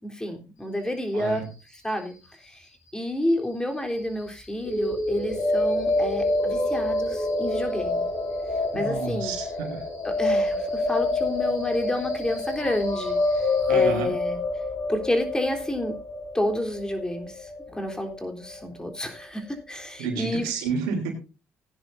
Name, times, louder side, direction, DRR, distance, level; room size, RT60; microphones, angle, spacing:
voice 1, 0.0-1.4 1.8-2.1 2.4-2.7 2.9-8.1 8.7-9.3 10.0-14.4 14.9-16.0 16.3-20.5, left 1 dB, 10° left, 4 dB, 3.6 m, -30 dB
voice 2, 1.1-1.5 8.7-9.9 13.7-14.1 20.0-21.1, right 5 dB, 85° right, 5 dB, 3.2 m, -30 dB
sound 1, 4.6-18.6, left 2 dB, 65° left, 7.2 m, -27 dB
17.5 x 10.0 x 2.6 m, 0.30 s
supercardioid pair, 60°, 6 cm